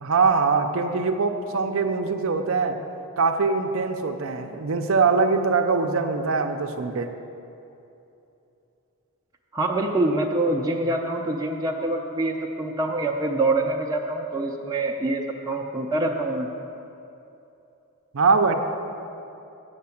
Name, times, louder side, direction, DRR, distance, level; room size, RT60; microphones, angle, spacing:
voice 1, 0.0-2.8 3.2-7.1 18.1-18.5, right 4 dB, 65° right, 5 dB, 0.6 m, -22 dB
voice 2, 9.5-16.5, right 2 dB, 15° right, -1 dB, 0.5 m, -25 dB
8.6 x 6.7 x 7.1 m, 2.8 s
head